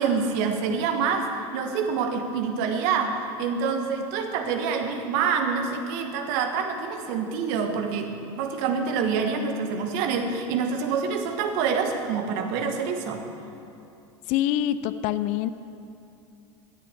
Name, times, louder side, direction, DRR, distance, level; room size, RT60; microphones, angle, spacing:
voice 1, 0.0-13.3, right 5 dB, 60° right, 5 dB, 1.4 m, -26 dB
voice 2, 14.3-15.5, left 12 dB, 50° left, 14 dB, 0.5 m, -25 dB
17.0 x 10.5 x 3.5 m, 2.6 s
hypercardioid pair, 95°, 16 cm